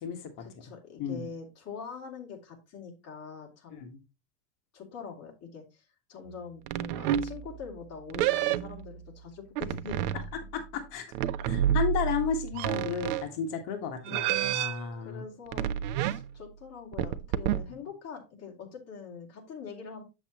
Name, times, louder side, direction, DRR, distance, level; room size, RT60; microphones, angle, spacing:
voice 1, 0.4-3.9 4.7-10.2 14.1-14.4 14.8-15.7 16.0-20.0, left 6 dB, 35° left, 2.8 m, -44 dB
sound 1, 6.7-7.8 8.1-9.0 9.5-10.6 11.1-13.3 14.0-14.8 15.5-16.4 16.9-17.7, right 10 dB, 80° right, 0.8 m, -29 dB
voice 2, 10.5-11.0 11.5-15.2, left 7 dB, 55° left, 1.6 m, -33 dB
8.3 x 7.0 x 3.0 m
supercardioid pair, 155°, 45 cm